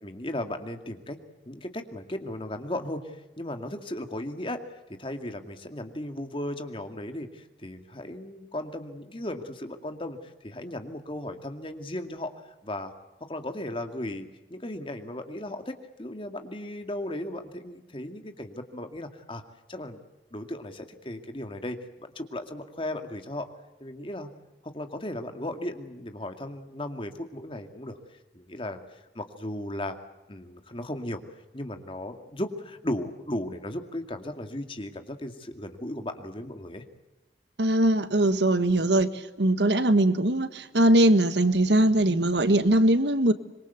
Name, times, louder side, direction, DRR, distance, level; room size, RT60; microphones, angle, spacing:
voice 1, 0.0-1.2 1.5-12.9 13.2-19.4 19.7-20.0 20.3-23.5 23.8-24.3 24.6-28.0 28.3-30.0 30.3-31.2 31.5-36.8, left 1 dB, 30° left, 7 dB, 2.2 m, -36 dB
voice 2, 37.6-39.1 39.4-43.3, right 1 dB, 80° right, 12 dB, 1.5 m, -21 dB
25.5 x 22.5 x 8.3 m, 1.0 s
head